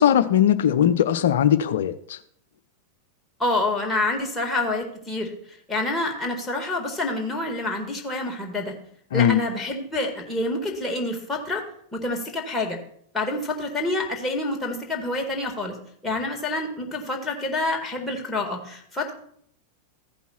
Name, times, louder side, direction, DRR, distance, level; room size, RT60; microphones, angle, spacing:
voice 1, 0.0-2.2 9.1-9.4, left 10 dB, 60° left, 13 dB, 0.6 m, -19 dB
voice 2, 3.4-5.3 5.7-8.7 9.1-11.6 11.9-12.8 13.1-15.7 16.0-19.1, left 2 dB, 10° left, 0 dB, 1.9 m, -27 dB
14.5 x 5.4 x 4.4 m, 0.64 s
figure-of-eight pair, 90°, 0 cm